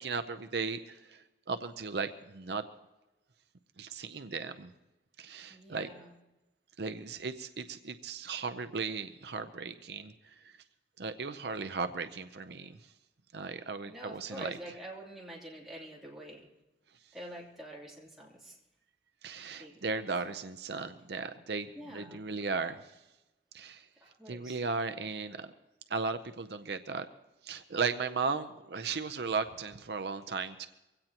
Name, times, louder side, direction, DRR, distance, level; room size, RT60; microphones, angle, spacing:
voice 1, 0.0-2.6 3.8-4.7 5.2-5.9 6.8-10.1 11.0-12.8 13.3-14.6 19.2-22.8 23.5-23.8 24.3-25.5 25.9-27.1 27.4-30.7, right 4 dB, 65° right, 9 dB, 0.6 m, -36 dB
voice 2, 5.5-6.1 13.9-16.5 17.1-18.6 19.6-20.0 21.7-22.2 24.0-24.6, right 1 dB, ahead, -4 dB, 3.1 m, -47 dB
23.0 x 17.0 x 2.9 m, 1.0 s
head